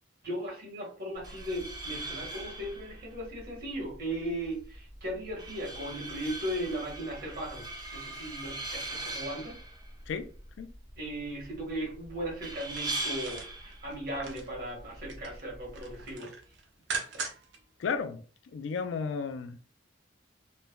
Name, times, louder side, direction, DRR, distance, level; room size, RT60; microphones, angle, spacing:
voice 1, 0.2-9.6 11.0-16.3, right 1 dB, 50° right, 1.3 m, -37 dB
sound 1, 1.1-16.1, right 2 dB, 20° right, 0.5 m, -41 dB
sound 2, 12.5-14.5 14.9-15.4 15.7-17.6 17.9-18.0, right 5 dB, 70° right, 0.6 m, -40 dB
voice 2, 17.8-19.6, left 5 dB, 75° left, 0.3 m, -34 dB
3.1 x 2.1 x 2.2 m
head